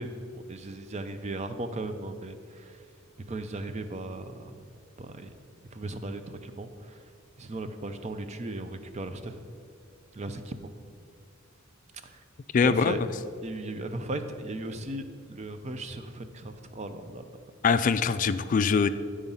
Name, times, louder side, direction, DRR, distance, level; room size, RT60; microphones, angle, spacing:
voice 1, 0.0-2.8 3.3-4.7 5.0-5.3 5.7-7.0 7.4-9.4 10.1-10.5 12.0-12.2 12.6-13.0 13.4-17.3, right 2 dB, 35° right, 8 dB, 0.5 m, -37 dB
voice 2, 12.5-13.1 17.6-18.9, left 5 dB, 40° left, 12 dB, 0.3 m, -23 dB
10.5 x 4.9 x 5.5 m, 2.4 s
head